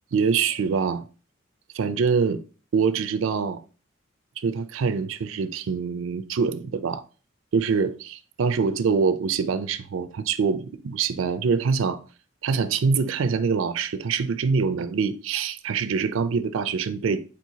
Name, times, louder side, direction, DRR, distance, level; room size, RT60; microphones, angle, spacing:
voice 1, 0.1-1.1 1.7-2.4 2.7-3.6 4.4-7.0 7.5-12.0 12.4-17.2, right 5 dB, 80° right, 0.4 m, -24 dB
4.5 x 4.2 x 2.7 m
head